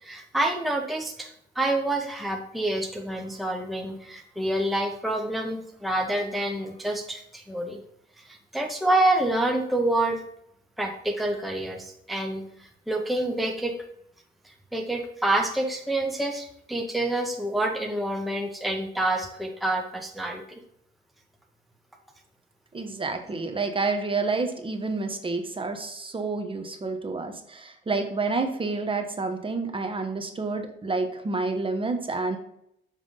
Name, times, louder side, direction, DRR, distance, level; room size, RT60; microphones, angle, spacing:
voice 1, 0.0-7.8 8.2-10.2 10.8-13.7 14.4-20.6, right 1 dB, ahead, 2 dB, 0.9 m, -27 dB
voice 2, 22.7-32.4, right 3 dB, 25° right, 5 dB, 1.1 m, -29 dB
7.7 x 3.4 x 5.4 m, 0.75 s
cardioid pair, 90°, 20 cm